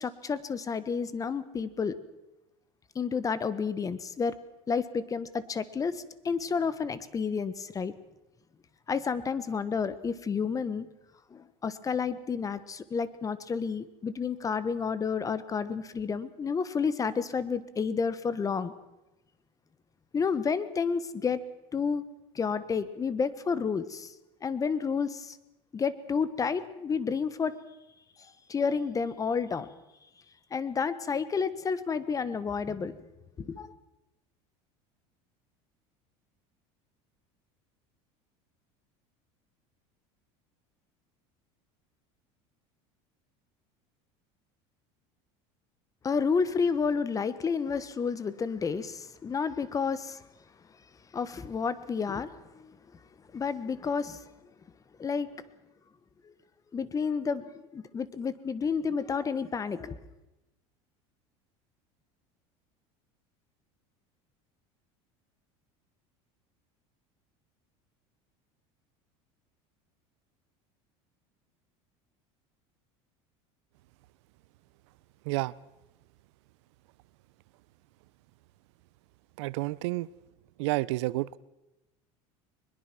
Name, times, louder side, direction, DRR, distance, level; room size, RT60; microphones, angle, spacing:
voice 1, 0.0-2.0 2.9-4.4 4.7-7.9 8.9-10.8 11.3-18.7 20.1-21.4 21.7-22.0 22.3-24.1 24.4-25.4 25.7-27.5 28.5-29.7 30.5-33.0 33.4-33.7 46.0-50.2 51.1-52.8 53.3-54.2 55.0-55.3 56.2-56.3 56.7-60.0, left 5 dB, 25° left, 15 dB, 1.3 m, -30 dB
voice 2, 79.4-80.1 80.6-81.4, right 20 dB, 80° right, 21 dB, 0.6 m, -30 dB
22.0 x 21.0 x 6.1 m, 0.95 s
supercardioid pair, 120°, 14 cm